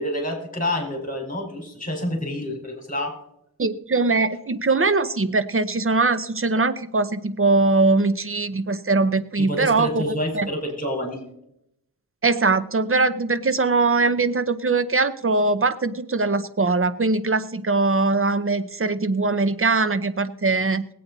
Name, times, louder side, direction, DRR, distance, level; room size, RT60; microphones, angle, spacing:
voice 1, 0.0-3.2 9.4-11.2, left 1 dB, 20° left, 1 dB, 4.5 m, -28 dB
voice 2, 3.6-10.0 10.3-10.5 12.2-20.9, right 3 dB, 35° right, 11 dB, 0.7 m, -21 dB
19.5 x 8.5 x 4.0 m, 0.79 s
wide cardioid pair, 70°, 37 cm